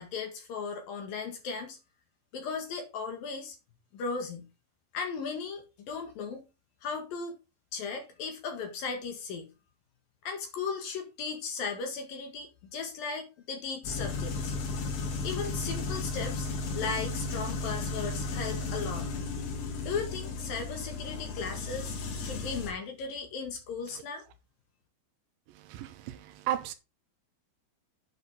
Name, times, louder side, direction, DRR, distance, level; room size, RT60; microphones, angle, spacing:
voice 1, 0.0-1.8 2.3-3.6 3.9-4.5 4.9-6.4 6.8-7.4 7.7-9.5 10.2-14.6 15.2-16.5 16.7-19.1 19.8-24.2, left 5 dB, 60° left, 3.0 m, -36 dB
sound 1, 13.8-22.7, left 3 dB, 85° left, 4.9 m, -34 dB
voice 2, 25.7-26.2 26.5-26.7, right 12 dB, 85° right, 3.1 m, -33 dB
9.4 x 6.6 x 3.7 m
omnidirectional pair, 5.4 m